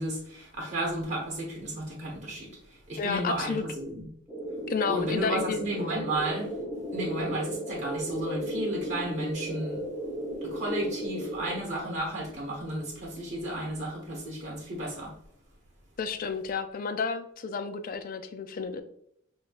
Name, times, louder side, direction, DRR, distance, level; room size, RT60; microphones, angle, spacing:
voice 1, 0.0-4.1 4.9-6.5 6.9-9.8 10.4-15.1, right 1 dB, 35° right, -1 dB, 1.1 m, -33 dB
voice 2, 3.0-3.7 4.7-5.6 16.0-18.8, left 5 dB, 45° left, 9 dB, 0.3 m, -31 dB
sound 1, 4.3-11.6, equal, 10° right, 0.7 m, -35 dB
6.2 x 2.2 x 2.4 m, 0.70 s
head